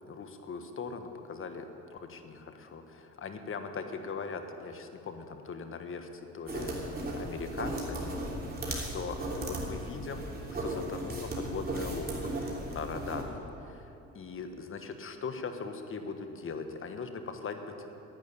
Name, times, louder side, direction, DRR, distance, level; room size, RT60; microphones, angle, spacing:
voice 1, 0.1-6.1 6.3-6.7 7.2-8.1 8.6-17.9, left 5 dB, 45° left, 7 dB, 1.4 m, -40 dB
sound 1, 6.5-13.2, right 1 dB, 30° right, 3.3 m, -36 dB
11.0 x 9.2 x 10.0 m, 2.9 s
supercardioid pair, 80°, 30 cm